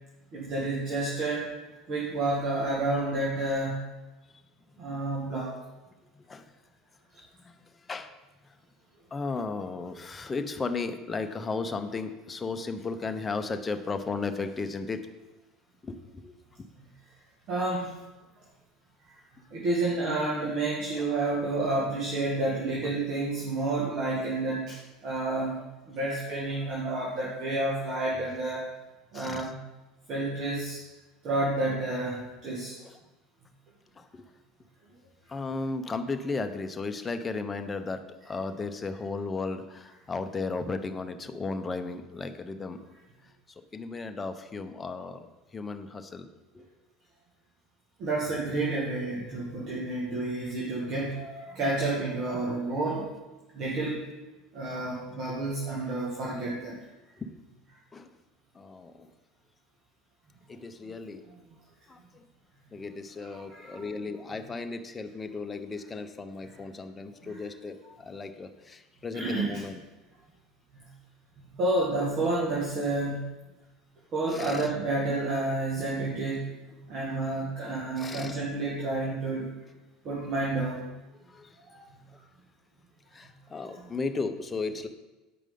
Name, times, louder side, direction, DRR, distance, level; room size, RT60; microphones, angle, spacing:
voice 1, 0.3-1.4 1.9-3.8 4.8-5.5 16.8-16.9 17.5-18.0 19.0-19.2 19.5-25.6 25.9-28.7 29.1-29.5 30.1-30.8 31.2-32.7 48.0-53.1 53.5-54.0 54.5-56.7 63.2-63.8 66.4-66.5 67.2-67.4 69.1-69.6 70.7-70.9 71.4-73.2 74.1-76.5 76.8-79.5 80.0-80.9 81.9-82.0, right 2 dB, 50° right, -5 dB, 1.7 m, -30 dB
voice 2, 6.1-6.5 7.4-8.1 9.1-15.0 15.8-16.3 29.1-29.5 32.8-32.9 34.0-34.3 35.3-42.8 43.7-45.3 45.5-46.3 46.5-46.7 57.2-57.3 57.9-58.1 58.5-59.1 60.5-61.3 61.9-62.2 62.7-69.8 74.3-74.7 78.0-78.4 81.3-81.6 83.1-84.9, left 4 dB, 20° left, 7 dB, 0.7 m, -35 dB
8.5 x 5.0 x 3.8 m, 1.1 s
hypercardioid pair, 85°, 0 cm